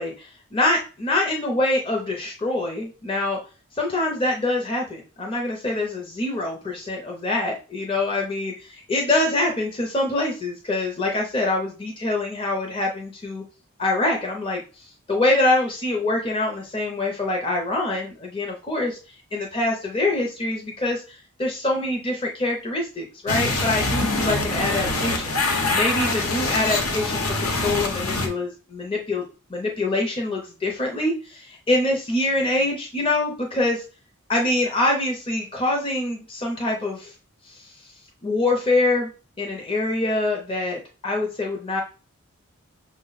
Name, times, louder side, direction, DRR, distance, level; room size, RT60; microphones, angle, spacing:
voice 1, 0.0-3.4 3.8-13.4 13.8-25.4 25.7-29.2 29.5-33.8 34.3-37.1 37.4-37.7 38.2-39.1 39.4-41.8, left 2 dB, 25° left, 0 dB, 0.5 m, -25 dB
sound 1, 23.3-28.3, left 2 dB, 85° left, 0.9 m, -24 dB
5.8 x 2.1 x 3.9 m, 0.35 s
head